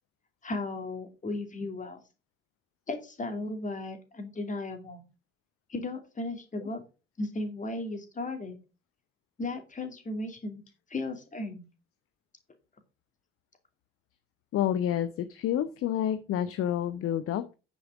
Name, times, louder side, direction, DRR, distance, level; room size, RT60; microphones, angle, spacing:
voice 1, 0.4-2.0 2.9-5.1 5.7-6.8 7.2-8.5 9.4-10.6 10.9-11.6, left 2 dB, 25° left, 6 dB, 2.7 m, -35 dB
voice 2, 14.5-17.4, left 10 dB, 45° left, 13 dB, 0.8 m, -29 dB
9.4 x 6.2 x 5.1 m, 0.32 s
figure-of-eight pair, 50°, 32 cm